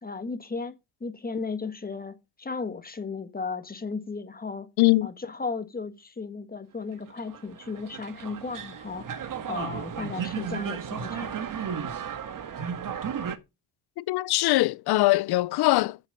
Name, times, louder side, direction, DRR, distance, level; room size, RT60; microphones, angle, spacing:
voice 1, 0.0-0.8 1.0-4.7 5.0-9.0 9.5-11.3, left 4 dB, 20° left, 1.7 m, -35 dB
voice 2, 4.8-5.1 14.0-16.0, left 19 dB, 70° left, 0.6 m, -22 dB
sound 1, 7.1-13.4, right 7 dB, 50° right, 1.6 m, -34 dB
7.7 x 7.1 x 5.2 m
supercardioid pair, 65°, 40 cm